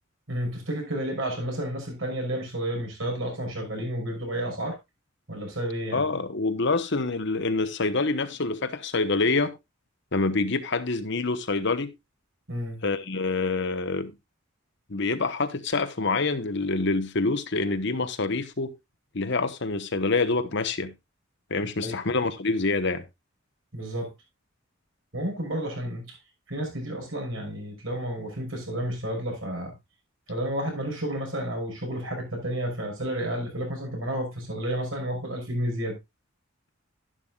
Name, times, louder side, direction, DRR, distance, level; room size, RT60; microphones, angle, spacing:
voice 1, 0.3-4.8 5.3-6.1 12.5-12.8 21.8-22.0 23.7-24.1 25.1-26.2 26.5-29.7 30.3-36.0, right 1 dB, 75° right, 5.9 m, -31 dB
voice 2, 5.9-9.5 10.1-11.9 12.8-14.1 14.9-18.7 19.1-20.9 21.5-23.0, left 3 dB, 60° left, 1.1 m, -26 dB
11.5 x 11.0 x 2.4 m
head